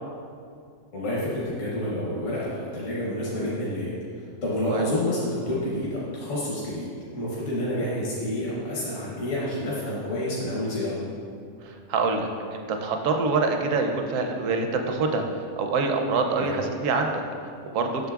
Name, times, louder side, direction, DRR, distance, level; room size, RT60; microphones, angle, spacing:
voice 1, 0.9-6.9 7.1-11.0 16.4-16.5, left 1 dB, 60° left, -7 dB, 1.3 m, -29 dB
voice 2, 11.6-15.2 15.6-17.1 17.6-17.9, right 4 dB, 70° right, 4 dB, 1.0 m, -25 dB
8.0 x 6.2 x 2.3 m, 2.4 s
omnidirectional pair, 1.5 m